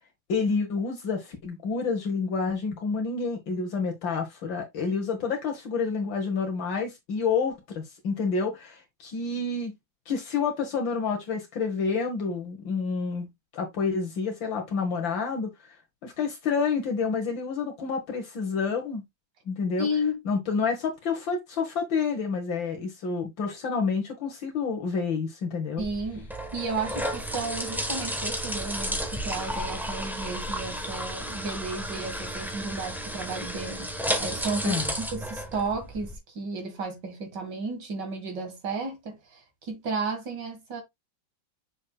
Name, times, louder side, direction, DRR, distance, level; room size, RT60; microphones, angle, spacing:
voice 1, 0.3-9.7 10.1-15.5 16.0-19.0 19.5-19.9 20.3-25.8 34.6-34.9, left 5 dB, 70° left, 2.1 m, -29 dB
voice 2, 19.8-20.2 25.8-40.8, right 2 dB, 60° right, 2.5 m, -33 dB
sound 1, 25.8-36.2, equal, ahead, 0.7 m, -33 dB
6.7 x 6.3 x 2.3 m
omnidirectional pair, 2.1 m